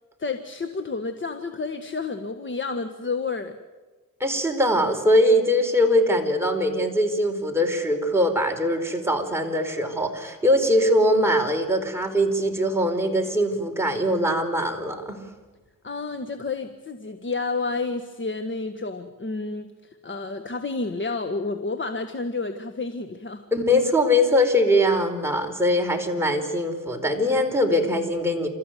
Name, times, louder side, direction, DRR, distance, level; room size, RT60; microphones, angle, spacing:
voice 1, 0.2-3.6 15.8-19.7 20.0-23.4, left 3 dB, 35° left, 7 dB, 1.6 m, -30 dB
voice 2, 4.2-15.2 23.5-28.5, equal, 5° right, 2 dB, 4.6 m, -22 dB
29.0 x 14.5 x 9.3 m, 1.3 s
cardioid pair, 80°, 34 cm